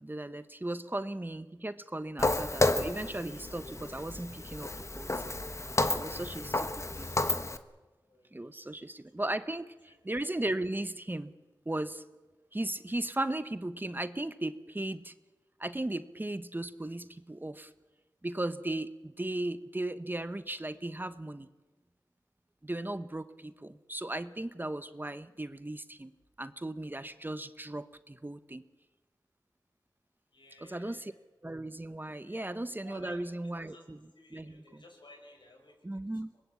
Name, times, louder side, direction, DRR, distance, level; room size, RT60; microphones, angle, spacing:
voice 1, 0.0-4.7 5.0-5.2 5.9-7.3 8.3-11.3 11.7-12.0 12.5-15.1 15.6-17.7 18.2-21.5 22.6-26.1 26.4-28.6 30.6-31.1 31.4-34.0 34.3-34.8 35.8-36.3, right 1 dB, 25° right, 12 dB, 1.1 m, -36 dB
Walk footsteps, 2.2-7.6, left 2 dB, 40° left, 1.3 m, -31 dB
voice 2, 8.1-8.7 9.4-9.5 9.9-10.0 30.3-31.2 32.2-32.6 32.8-33.9 34.1-35.8 36.3-36.4, left 2 dB, 80° left, 2 dB, 5.9 m, -55 dB
24.5 x 20.5 x 8.5 m, 1.2 s
cardioid pair, 45°, 8 cm